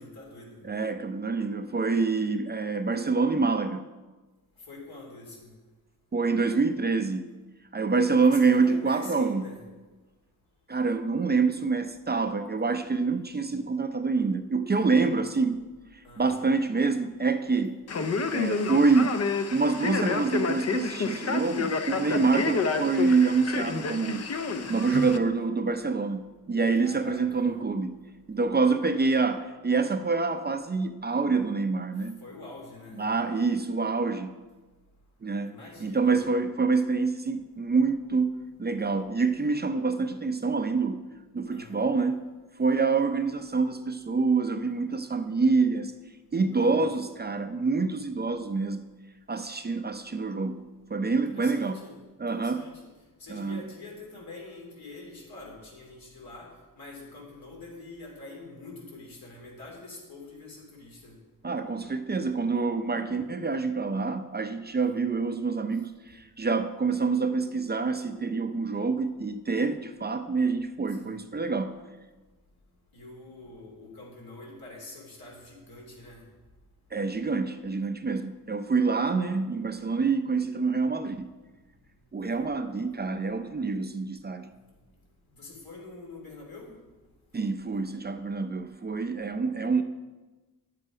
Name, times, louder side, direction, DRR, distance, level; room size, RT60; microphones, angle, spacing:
voice 1, 0.0-0.6 4.7-5.5 8.0-9.6 14.9-15.1 16.0-16.3 22.0-22.3 26.8-27.5 32.2-33.0 35.4-36.2 41.5-41.8 46.5-46.8 51.3-52.0 52.3-52.8 53.2-61.2 64.8-65.0 71.0-71.2 72.9-76.2 85.3-86.8, left 2 dB, 80° left, -1 dB, 2.9 m, -45 dB
voice 2, 0.6-3.8 6.1-7.3 7.7-9.5 10.7-15.6 15.9-17.8 18.3-19.2 19.5-24.3 24.7-28.0 28.3-32.2 33.0-34.3 35.2-35.5 35.8-38.3 38.6-41.0 41.3-42.2 42.6-45.9 46.3-48.9 49.3-50.6 50.9-51.8 52.2-52.6 53.3-53.6 61.4-71.8 76.9-81.3 82.1-84.5 87.3-89.8, right 4 dB, 30° right, 8 dB, 0.5 m, -26 dB
Male speech man speaking, 17.9-25.2, left 4 dB, 45° left, 0.6 m, -29 dB
9.7 x 7.6 x 4.9 m, 1.2 s
wide cardioid pair, 115°, 36 cm